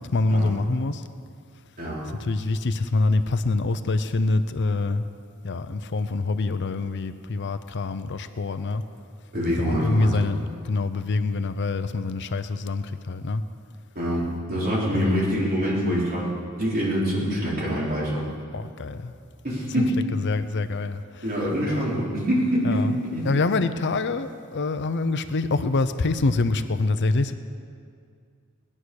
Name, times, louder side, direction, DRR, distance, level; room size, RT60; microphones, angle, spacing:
voice 1, 0.1-1.0 2.2-5.0 5.4-8.8 9.7-10.4 10.6-13.4 14.9-15.3 18.5-19.1 19.8-19.9 20.1-21.2 21.7-21.8 22.6-23.0 23.2-27.3, left 3 dB, 55° left, 10 dB, 0.6 m, -25 dB
voice 2, 1.8-2.1 9.3-10.2 13.9-14.2 14.5-16.3 16.6-18.2 19.4-20.0 21.2-23.3, equal, 45° right, -6 dB, 4.3 m, -25 dB
19.5 x 9.9 x 6.4 m, 2.3 s
head